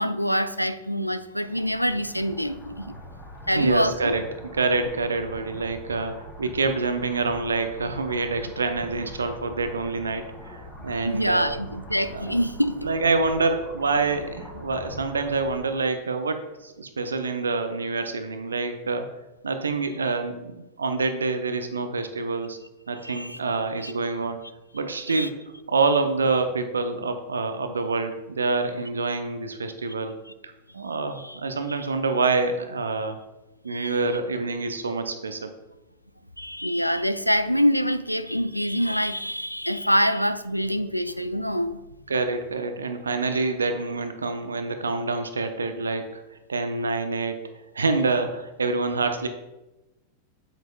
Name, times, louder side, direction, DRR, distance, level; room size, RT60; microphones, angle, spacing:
voice 1, 0.0-2.9 3.5-4.1 11.0-12.8 23.0-23.4 23.8-23.9 25.1-25.3 30.3-30.4 31.2-31.4 31.7-31.8 33.7-34.0 36.4-41.8, equal, 90° left, 12 dB, 0.4 m, -25 dB
sound 1, 1.4-15.6, left 1 dB, 25° left, 2.0 m, -43 dB
voice 2, 3.5-4.2 4.5-11.5 12.0-12.4 12.8-19.1 19.4-22.6 22.9-24.4 24.7-25.3 25.7-30.1 30.4-33.2 33.6-35.5 42.1-46.2 46.5-47.4 47.7-49.3, right 3 dB, 75° right, 8 dB, 0.6 m, -26 dB
8.0 x 8.0 x 2.3 m, 1.0 s
figure-of-eight pair, 90°, 0 cm